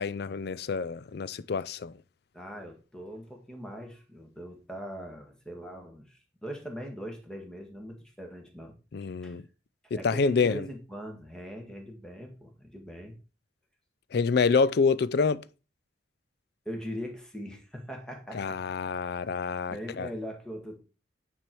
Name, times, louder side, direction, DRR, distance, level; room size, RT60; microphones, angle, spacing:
voice 1, 0.0-1.9 8.9-9.4 9.9-10.7 14.1-15.4 18.3-20.1, left 5 dB, 60° left, 0.4 m, -27 dB
voice 2, 2.3-8.7 9.2-9.4 9.8-13.1 16.6-18.6 19.7-20.8, equal, 5° left, 1.6 m, -41 dB
9.4 x 4.5 x 4.5 m
head